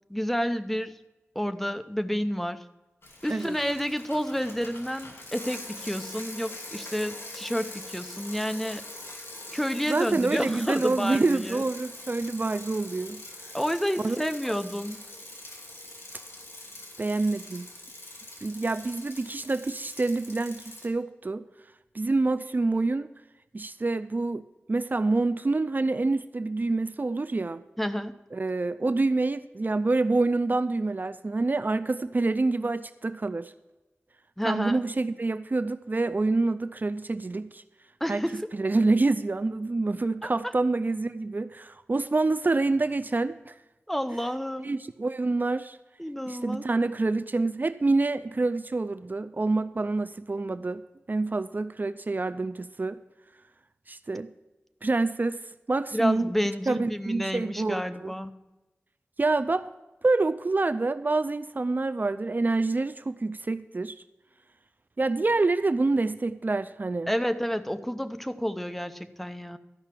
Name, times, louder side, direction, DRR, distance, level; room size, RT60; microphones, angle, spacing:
voice 1, 0.1-1.0 1.3-2.6 3.2-8.8 9.5-11.6 13.5-15.0 27.8-28.1 34.4-34.8 38.0-38.5 40.2-40.5 43.9-44.7 46.0-46.6 55.9-58.3 67.1-69.6, equal, 5° left, 9 dB, 0.6 m, -30 dB
Bicycle, 3.0-20.9, left 2 dB, 65° left, 2.7 m, -43 dB
voice 2, 9.9-13.2 14.0-14.2 17.0-17.7 18.4-21.4 21.9-23.1 23.5-27.6 28.3-33.5 34.5-37.6 38.1-38.2 38.5-43.5 44.6-45.8 46.3-50.8 51.1-53.0 53.9-54.3 54.8-55.4 55.7-56.3 56.7-58.1 59.2-59.7 60.0-64.0 65.0-67.1, right 3 dB, 45° right, 12 dB, 0.4 m, -27 dB
13.5 x 5.7 x 7.4 m, 1.0 s
wide cardioid pair, 60°, 4 cm